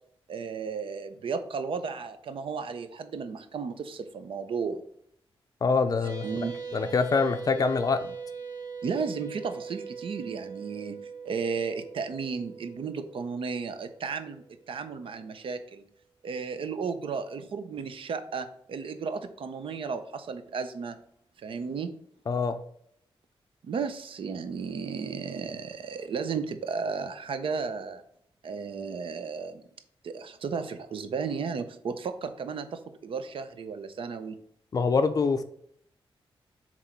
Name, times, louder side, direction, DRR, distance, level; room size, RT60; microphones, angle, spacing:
voice 1, 0.3-4.8 6.2-6.6 8.8-15.8 16.2-21.0 21.4-21.9 23.6-28.0 28.4-29.6 30.0-34.4, right 5 dB, 65° right, 10 dB, 0.6 m, -34 dB
voice 2, 5.6-6.3 6.7-8.1 22.3-22.6 34.7-35.4, left 4 dB, 40° left, 9 dB, 0.5 m, -25 dB
sound 1, 6.0-14.7, right 5 dB, 40° right, 1.1 m, -41 dB
7.7 x 3.1 x 4.5 m, 0.67 s
wide cardioid pair, 180°, 10 cm